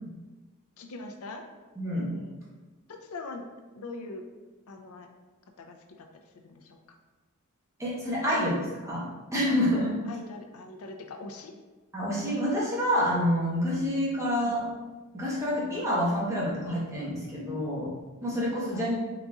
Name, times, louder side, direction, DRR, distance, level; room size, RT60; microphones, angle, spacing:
voice 1, 0.8-1.5 1.9-2.4 2.9-3.4 3.7-4.2 4.7-5.1 5.6-6.1 6.5-6.8 10.1-11.5 14.4-14.6 18.7-18.9, left 3 dB, 80° left, 4 dB, 0.5 m, -42 dB
voice 2, 1.7-2.1 7.8-9.1 9.3-9.9 11.9-14.6 15.1-17.9 18.2-19.0, equal, 15° right, -7 dB, 1.0 m, -27 dB
4.0 x 3.9 x 2.4 m, 1.2 s
head